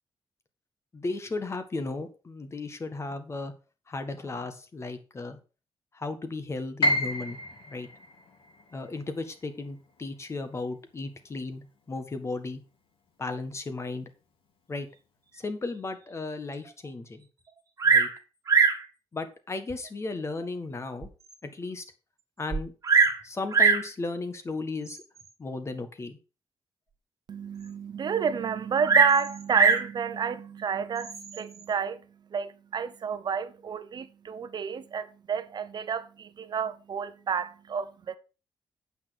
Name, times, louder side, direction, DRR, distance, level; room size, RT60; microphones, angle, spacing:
voice 1, 0.9-3.5 3.9-5.4 5.9-7.4 7.7-7.9 8.7-12.6 13.2-14.1 14.7-14.9 15.3-17.3 17.9-18.1 19.1-21.1 21.4-21.9 22.4-22.7 23.2-25.0 25.4-26.2, left 3 dB, 30° left, 1.6 m, -35 dB
Piano, 6.8-12.7 13.1-14.2 14.6-14.7 15.4-15.8, left 1 dB, 85° left, 2.6 m, -33 dB
Bird vocalization bird call bird song, 17.8-18.2 18.5-18.9 19.7-19.8 20.4-20.5 21.0-21.1 21.3-21.4 22.5-23.2 23.5-23.9 24.9-25.2 28.8-29.9 31.0-31.4, right 5 dB, 40° right, 1.9 m, -22 dB
voice 2, 27.3-32.0 32.3-38.2, right 6 dB, 55° right, 0.8 m, -30 dB
8.8 x 5.9 x 6.0 m
cardioid pair, 115°, 9 cm